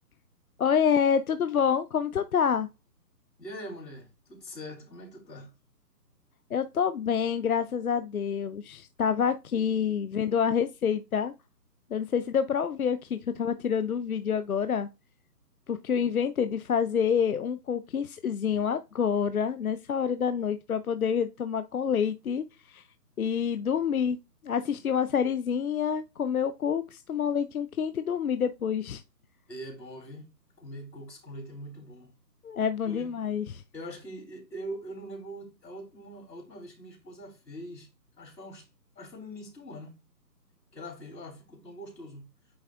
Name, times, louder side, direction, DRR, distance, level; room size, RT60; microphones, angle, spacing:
voice 1, 0.6-2.7 6.5-11.3 11.9-14.9 15.7-22.8 23.2-24.2 24.4-29.0 32.4-33.6, left 7 dB, 60° left, 0.6 m, -27 dB
voice 2, 3.4-5.5 29.5-30.3 30.6-32.1 32.8-33.1 33.7-37.9 38.2-38.7 39.0-40.0 40.7-42.3, equal, 80° left, 3.5 m, -42 dB
8.8 x 3.1 x 3.5 m
hypercardioid pair, 165°, 50 cm